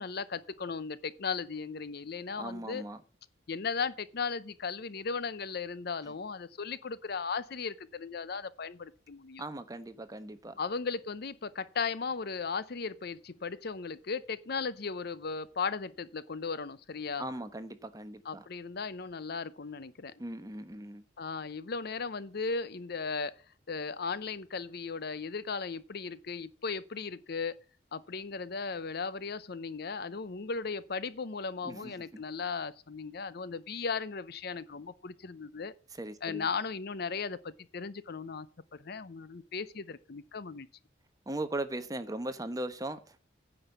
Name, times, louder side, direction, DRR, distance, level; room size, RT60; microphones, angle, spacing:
voice 1, 0.0-2.8 3.5-9.4 10.6-17.3 18.2-20.1 21.2-23.3 23.7-27.6 27.9-35.7 36.2-38.5 38.7-40.7, left 5 dB, 55° left, 0.6 m, -36 dB
voice 2, 2.4-3.0 6.1-6.2 9.4-10.6 17.2-18.5 20.2-21.0 31.6-32.2 35.9-36.5 41.3-43.2, right 1 dB, 20° right, 0.9 m, -39 dB
9.8 x 5.5 x 8.0 m
head